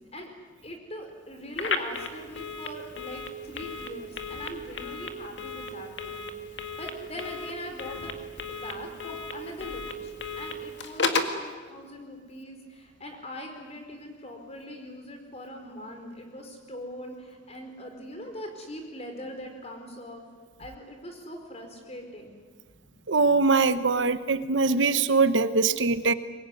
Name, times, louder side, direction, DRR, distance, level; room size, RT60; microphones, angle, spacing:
voice 1, 0.6-8.1 8.5-20.2 20.6-22.3 22.8-23.0 24.6-24.7, left 1 dB, 35° left, 4 dB, 4.7 m, -41 dB
Telephone, 1.5-11.4, left 3 dB, 70° left, 2.1 m, -34 dB
voice 2, 23.1-26.1, right 4 dB, 85° right, 12 dB, 1.1 m, -22 dB
24.0 x 21.0 x 9.8 m, 1.5 s
head